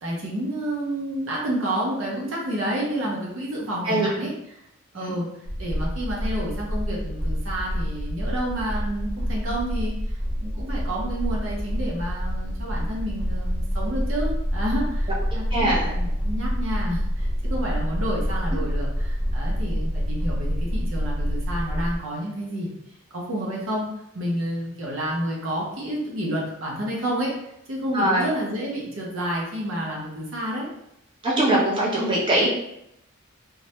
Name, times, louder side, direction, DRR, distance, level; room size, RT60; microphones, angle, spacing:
voice 1, 0.0-4.3 4.9-22.7 23.1-23.9 24.1-27.3 27.7-30.7, right 1 dB, 70° right, -3 dB, 0.6 m, -30 dB
sound 1, 5.5-22.0, equal, 20° left, 0.9 m, -27 dB
voice 2, 15.5-15.9 27.9-28.3 31.2-32.5, right 1 dB, 25° right, -7 dB, 0.6 m, -22 dB
2.2 x 2.0 x 2.8 m, 0.81 s
head